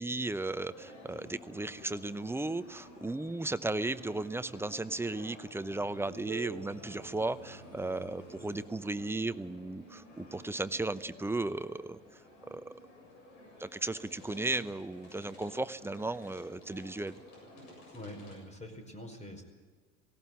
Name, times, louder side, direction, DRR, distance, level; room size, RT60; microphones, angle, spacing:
voice 1, 0.0-12.0 12.5-12.6 13.6-17.2, right 2 dB, 5° right, 14 dB, 0.8 m, -35 dB
sound 1, 0.7-18.4, left 1 dB, 65° left, 7.5 m, -52 dB
Piano, 6.3-11.6 12.5-12.6 13.1-13.2 13.9-14.0 15.1-15.2, right 14 dB, 80° right, 1.5 m, -51 dB
voice 2, 17.9-19.4, left 1 dB, 20° left, 6 dB, 4.9 m, -45 dB
18.0 x 17.0 x 9.5 m, 1.5 s
hypercardioid pair, 70°, 37 cm